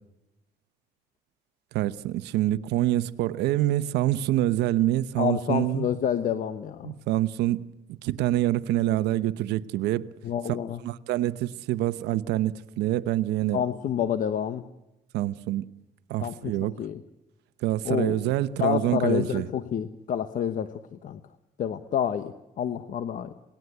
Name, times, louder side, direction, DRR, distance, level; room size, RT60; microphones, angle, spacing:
voice 1, 1.7-5.9 6.8-10.1 10.8-13.6 15.1-15.7 16.1-16.7 17.6-19.5, right 14 dB, 85° right, 0.9 m, -26 dB
voice 2, 5.2-6.9 10.2-10.8 13.5-14.6 16.2-17.0 17.8-18.3 18.6-21.2 21.6-23.3, left 9 dB, 50° left, 1.1 m, -28 dB
27.5 x 19.0 x 8.1 m
cardioid pair, 110°, 17 cm